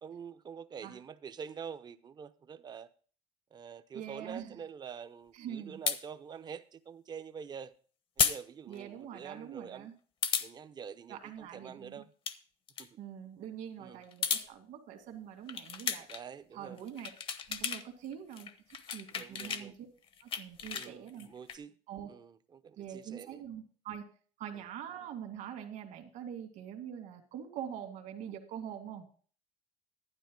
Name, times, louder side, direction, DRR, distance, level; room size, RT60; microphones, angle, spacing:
voice 1, 0.0-2.9 3.5-7.7 8.2-9.9 10.4-12.1 12.8-12.9 13.8-14.0 16.1-16.8 19.1-19.7 20.7-21.8 22.1-23.4 24.5-24.6, right 7 dB, 30° right, 0.7 m, -46 dB
voice 2, 3.9-4.5 5.3-5.8 8.7-9.9 11.1-12.0 13.0-16.1 16.5-17.1 17.5-18.5 18.9-19.9 20.2-21.3 21.9-22.1 22.8-24.1 24.4-29.1, right 9 dB, 65° right, 2.1 m, -44 dB
sound 1, 5.9-6.0 8.2-8.4 8.7-8.8 10.2-10.5 12.0-12.4 12.7-12.9 14.0-14.5 15.5-16.2 16.8-17.8 18.1-19.6 20.0-21.6, left 7 dB, 40° left, 0.9 m, -33 dB
12.0 x 9.7 x 3.8 m
cardioid pair, 125°, 14 cm